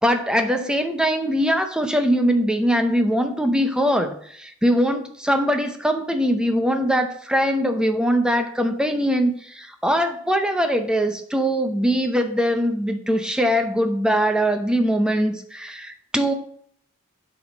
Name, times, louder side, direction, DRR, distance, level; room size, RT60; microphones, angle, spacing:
voice 1, 0.0-16.3, equal, 5° right, 6 dB, 0.6 m, -22 dB
8.4 x 5.0 x 4.1 m, 0.63 s
head